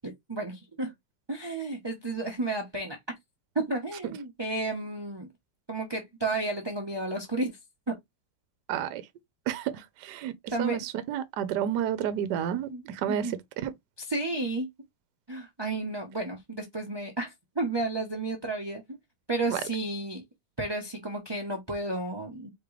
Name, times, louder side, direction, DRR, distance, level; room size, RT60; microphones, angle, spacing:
voice 1, 0.0-0.9 1.3-3.0 3.7-5.3 5.7-7.6 7.9-8.0 10.5-10.8 12.7-13.3 14.0-14.7 15.3-18.8 19.3-20.2 20.6-22.5, right 2 dB, 20° right, 0.8 m, -32 dB
voice 2, 8.7-9.0 9.5-10.3 10.6-13.3 13.6-13.7 19.5-19.6, right 10 dB, 75° right, 1.2 m, -30 dB
4.6 x 3.6 x 3.2 m
omnidirectional pair, 1.9 m